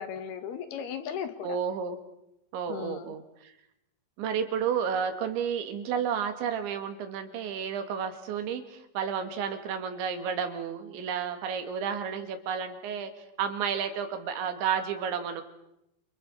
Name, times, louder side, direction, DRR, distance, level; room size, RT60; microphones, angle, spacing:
voice 1, 0.0-1.6 2.7-3.1, left 8 dB, 70° left, 9 dB, 3.5 m, -36 dB
voice 2, 1.4-2.0 2.5-3.5 4.2-13.1 13.4-15.4, right 7 dB, 85° right, 7 dB, 4.5 m, -31 dB
29.5 x 28.0 x 5.5 m, 0.82 s
omnidirectional pair, 5.1 m